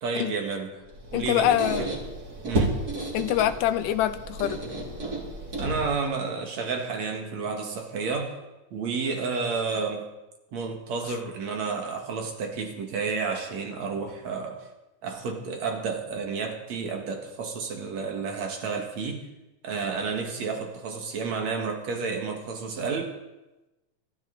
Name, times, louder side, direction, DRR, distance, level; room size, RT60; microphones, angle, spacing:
voice 1, 0.0-0.8 1.1-1.9 2.4-2.8 5.6-8.3 8.7-10.0 10.5-14.7 15.0-19.2 19.6-23.2, right 4 dB, 60° right, 2 dB, 2.9 m, -31 dB
Squeak, 0.9-6.1, right 1 dB, 30° right, 3.3 m, -32 dB
voice 2, 1.1-1.9 3.1-4.6, left 12 dB, 80° left, 12 dB, 2.2 m, -24 dB
25.5 x 13.0 x 4.1 m, 1.0 s
omnidirectional pair, 3.8 m